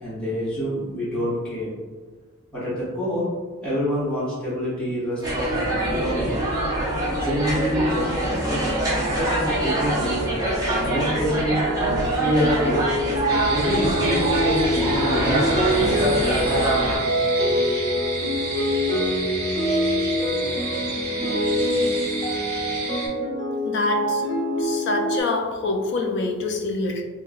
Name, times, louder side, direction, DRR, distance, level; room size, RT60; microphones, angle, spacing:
voice 1, 0.0-1.7 2.5-3.3 3.6-6.4 7.1-8.6 8.9-10.2 10.6-12.9 13.4-16.4, equal, 5° left, -11 dB, 1.0 m, -27 dB
sound 1, 5.2-17.0, right 1 dB, 15° right, 0.6 m, -24 dB
sound 2, 11.1-25.2, equal, 30° left, 0.8 m, -25 dB
sound 3, 13.3-23.1, right 3 dB, 45° right, 1.2 m, -31 dB
voice 2, 23.6-24.2 24.6-27.0, left 2 dB, 55° left, 2 dB, 0.4 m, -26 dB
3.7 x 2.1 x 2.4 m, 1.4 s
head